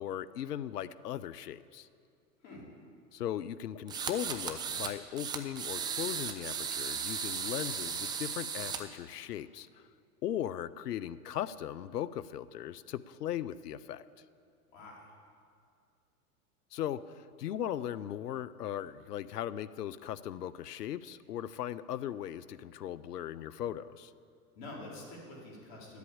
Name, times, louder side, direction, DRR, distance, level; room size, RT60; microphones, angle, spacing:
voice 1, 0.0-1.9 3.1-9.8 10.2-14.0 16.7-24.1, left 11 dB, 85° left, 17 dB, 0.6 m, -38 dB
sound 1, 3.9-4.9 5.2-8.8, right 6 dB, 10° right, 0.4 m, -36 dB
voice 2, 14.7-15.2 24.6-26.0, left 2 dB, 50° left, -3 dB, 3.9 m, -47 dB
11.0 x 8.3 x 8.6 m, 2.4 s
hypercardioid pair, 110°, 46 cm